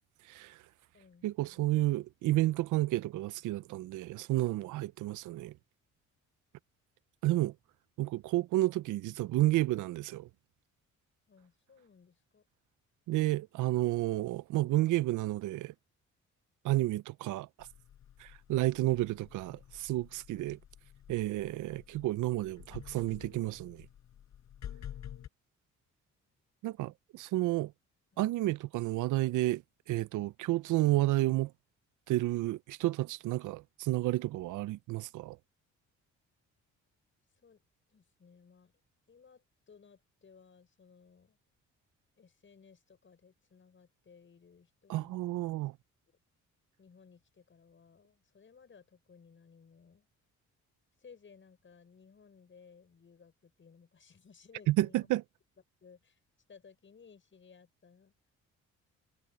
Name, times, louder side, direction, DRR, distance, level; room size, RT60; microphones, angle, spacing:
voice 1, 0.3-0.6 1.2-5.5 7.2-7.5 8.0-10.3 13.1-15.7 16.6-17.5 18.2-20.6 21.1-23.9 26.6-27.7 28.2-29.6 29.9-31.5 32.1-35.4 44.9-45.7 54.7-55.2, right 17 dB, 80° right, 0.6 m, -31 dB
voice 2, 0.9-1.7 11.3-12.4 37.4-37.6 37.9-38.7 39.1-41.4 42.2-45.4 46.8-50.1 51.0-55.2 55.8-56.2 56.5-58.1, left 6 dB, 40° left, 6.8 m, -59 dB
sound 1, 17.6-25.3, left 10 dB, 65° left, 4.9 m, -50 dB
cardioid pair, 90°, 30 cm